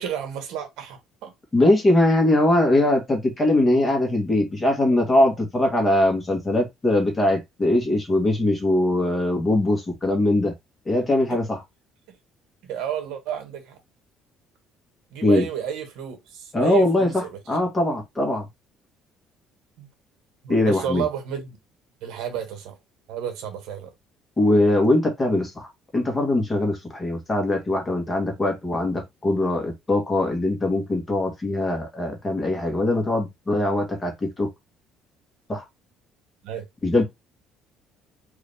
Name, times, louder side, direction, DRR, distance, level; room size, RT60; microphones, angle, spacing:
voice 1, 0.0-1.3 11.3-11.4 12.6-13.8 15.1-17.3 19.8-19.9 20.4-21.5 22.0-22.8 23.1-23.9 36.4-36.6, right 8 dB, 80° right, 1.4 m, -31 dB
voice 2, 1.5-10.5 10.8-11.6 15.2-15.5 16.5-18.4 20.5-21.0 24.4-34.5 35.5-35.6 36.8-37.0, left 1 dB, 15° left, 1.5 m, -21 dB
4.8 x 2.7 x 3.4 m
cardioid pair, 160°, 0 cm